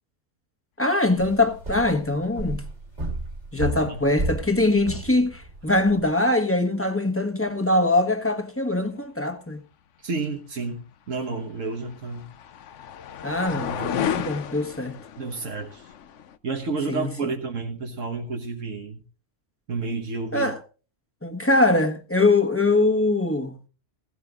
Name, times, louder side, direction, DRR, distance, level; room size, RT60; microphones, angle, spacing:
voice 1, 0.8-2.7 3.5-9.6 13.2-15.0 16.9-17.1 20.3-20.6 21.2-23.6, left 2 dB, 10° left, 1.2 m, -22 dB
sound 1, 1.2-6.1, right 2 dB, 65° right, 2.9 m, -33 dB
voice 2, 3.7-4.0 10.0-12.3 13.5-14.3 15.2-15.9 16.4-19.0 19.7-20.5, right 3 dB, 85° right, 1.7 m, -31 dB
sound 2, 11.1-16.4, left 9 dB, 75° left, 1.1 m, -33 dB
16.5 x 16.5 x 2.5 m
omnidirectional pair, 1.3 m